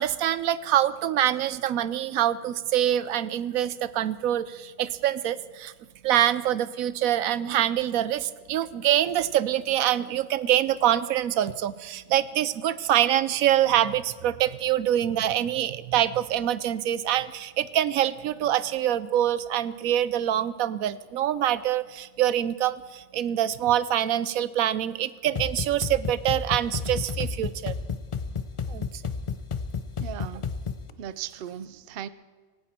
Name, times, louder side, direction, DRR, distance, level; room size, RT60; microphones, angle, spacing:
voice 1, 0.0-5.7 6.0-27.7 28.7-28.9, right 11 dB, 85° right, 16 dB, 1.1 m, -25 dB
sound 1, 25.3-30.9, left 5 dB, 40° left, 0.4 m, -32 dB
voice 2, 30.0-30.5 31.0-32.1, right 10 dB, 55° right, 15 dB, 0.7 m, -37 dB
18.0 x 17.5 x 4.4 m, 1.5 s
omnidirectional pair, 1.4 m